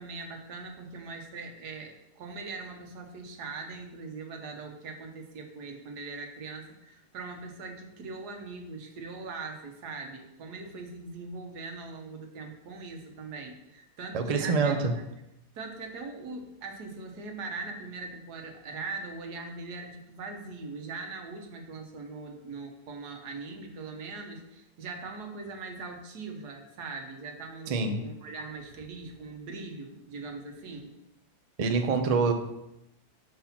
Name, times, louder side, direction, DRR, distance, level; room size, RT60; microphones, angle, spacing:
voice 1, 0.0-14.9 15.5-30.9, right 3 dB, 90° right, 3 dB, 1.6 m, -41 dB
voice 2, 14.1-14.9 27.7-28.1 31.6-32.3, right 4 dB, 55° right, 6 dB, 0.4 m, -25 dB
5.7 x 4.7 x 5.7 m, 0.87 s
omnidirectional pair, 1.7 m